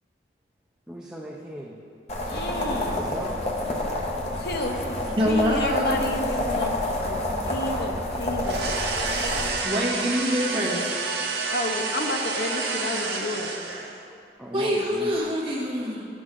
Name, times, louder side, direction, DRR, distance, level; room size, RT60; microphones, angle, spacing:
voice 1, 0.9-1.8 3.0-3.5 4.7-4.8 13.7-15.3, equal, 5° right, -3 dB, 0.5 m, -38 dB
sound 1, 2.1-9.5, left 1 dB, 35° left, 1.0 m, -28 dB
voice 2, 2.3-3.2 4.3-5.0 5.2-8.7 11.5-13.5, left 1 dB, 60° left, 4 dB, 0.6 m, -31 dB
voice 3, 5.2-6.0 9.6-10.8 14.5-16.0, equal, 30° right, -4 dB, 1.4 m, -25 dB
sound 2, 8.4-14.0, right 3 dB, 65° right, 1.0 m, -29 dB
11.0 x 6.1 x 3.8 m, 2.4 s
head